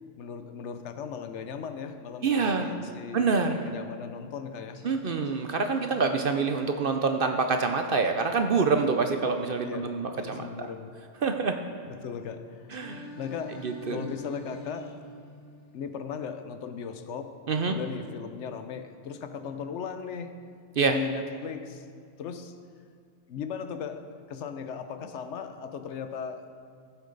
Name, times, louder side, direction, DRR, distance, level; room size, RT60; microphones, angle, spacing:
voice 1, 0.2-3.2 3.7-4.9 9.6-10.9 11.8-12.7 13.2-15.0 15.7-17.4 17.7-20.3 20.8-21.8 22.2-22.5 23.3-26.4, left 6 dB, 70° left, 9 dB, 0.9 m, -37 dB
voice 2, 2.2-2.7 3.1-3.6 4.8-10.7 11.2-11.6 12.7-13.1 13.6-14.0 17.5-17.8 20.8-21.0, right 4 dB, 55° right, 6 dB, 0.7 m, -26 dB
Singing, 4.7-8.7 12.7-16.7, left 2 dB, 50° left, 1.3 m, -47 dB
15.0 x 8.2 x 3.9 m, 2.2 s
omnidirectional pair, 1.3 m